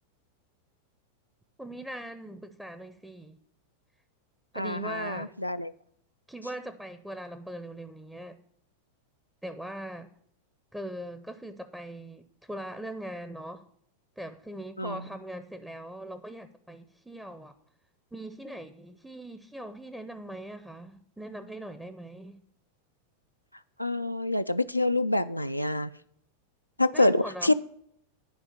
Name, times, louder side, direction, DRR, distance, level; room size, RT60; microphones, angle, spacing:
voice 1, 1.6-3.4 4.5-5.3 6.3-8.4 9.4-10.1 10.7-13.6 14.2-17.6 18.1-22.4 26.9-27.5, right 1 dB, 5° right, 10 dB, 0.6 m, -41 dB
voice 2, 4.5-5.7 14.8-15.0 23.8-25.9 26.8-27.5, left 2 dB, 90° left, 10 dB, 0.3 m, -26 dB
10.5 x 4.9 x 6.7 m, 0.68 s
figure-of-eight pair, 90°, 0 cm